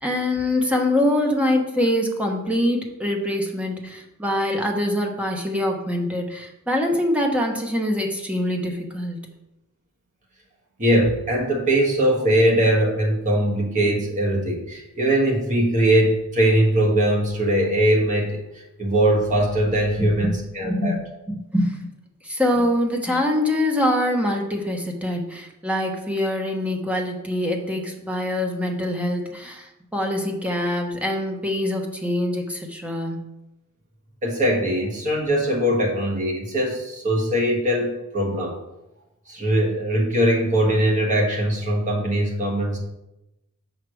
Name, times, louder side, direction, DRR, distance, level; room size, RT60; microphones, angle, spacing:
voice 1, 0.0-9.3 20.0-20.4 20.6-21.0 21.3-21.9 22.2-33.3, left 1 dB, 5° right, 1 dB, 1.0 m, -24 dB
voice 2, 10.8-20.9 34.2-38.6 39.3-42.8, right 1 dB, 35° right, -2 dB, 1.5 m, -21 dB
5.7 x 4.9 x 6.2 m, 0.92 s
head